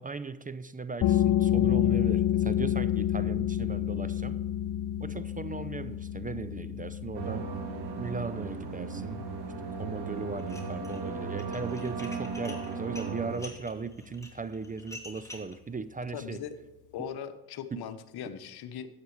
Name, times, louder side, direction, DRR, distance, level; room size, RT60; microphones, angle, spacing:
voice 1, 0.0-4.4 5.0-7.5 8.0-9.3 9.7-16.4 17.0-17.1 17.7-17.8, right 4 dB, 20° right, 14 dB, 0.5 m, -38 dB
sound 1, 1.0-12.4, left 11 dB, 50° left, 0.6 m, -30 dB
sound 2, 7.1-13.4, right 5 dB, 70° right, 1.7 m, -36 dB
Dishes pots and pans, 10.4-11.0 11.3-15.6, left 2 dB, 5° left, 2.6 m, -47 dB
voice 2, 16.1-16.6 16.9-18.9, left 8 dB, 70° left, 11 dB, 1.0 m, -39 dB
12.5 x 8.3 x 3.2 m, 1.1 s
supercardioid pair, 60°, 40 cm